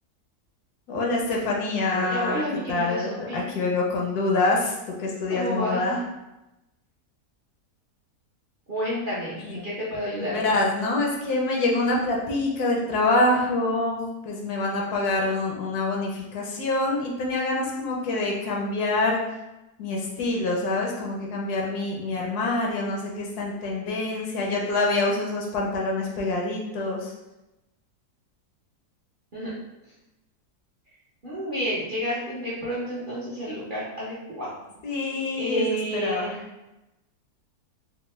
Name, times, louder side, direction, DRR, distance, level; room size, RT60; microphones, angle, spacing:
voice 1, 0.9-2.4 2.7-6.0 9.4-9.6 10.1-19.2 19.8-27.1 34.8-36.4, left 2 dB, 75° left, -2 dB, 1.2 m, -26 dB
voice 2, 1.9-3.5 5.3-5.8 8.7-10.3 29.3-29.5 31.2-34.5 35.4-36.4, equal, 45° right, -9 dB, 0.7 m, -30 dB
3.5 x 2.0 x 3.0 m, 0.96 s
omnidirectional pair, 1.7 m